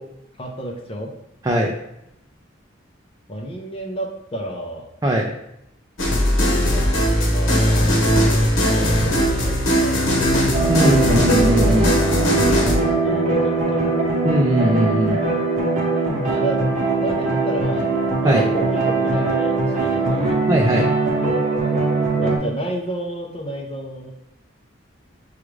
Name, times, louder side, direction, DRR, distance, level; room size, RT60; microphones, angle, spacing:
voice 1, 0.4-1.1 3.3-4.8 6.7-6.8 7.2-7.9 8.2-10.5 11.7-11.8 12.2-14.1 16.3-16.6 17.0-17.9 18.2-20.4 22.2-24.1, right 1 dB, 30° left, 1 dB, 0.6 m, -31 dB
sound 1, 6.0-12.8, equal, 85° left, 1.0 m, -19 dB
sound 2, 10.5-22.4, right 3 dB, 40° right, 0.9 m, -21 dB
voice 2, 10.7-11.9 14.2-15.2 18.2-18.4 20.5-20.9, right 1 dB, 20° right, 0 dB, 0.4 m, -19 dB
6.1 x 2.4 x 3.1 m, 0.82 s
head